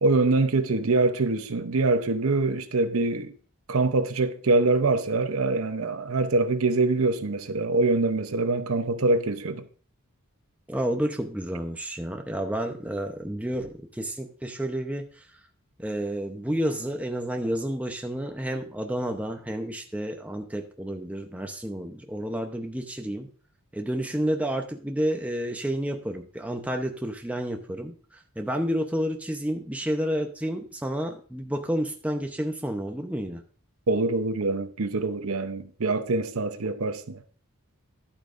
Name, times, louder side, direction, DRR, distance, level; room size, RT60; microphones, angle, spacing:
voice 1, 0.0-3.3 3.7-9.7 33.9-37.2, right 3 dB, 70° right, 0.7 m, -24 dB
voice 2, 10.7-15.1 15.8-23.3 23.7-33.4, equal, 5° right, 0.7 m, -30 dB
11.5 x 8.7 x 2.5 m
head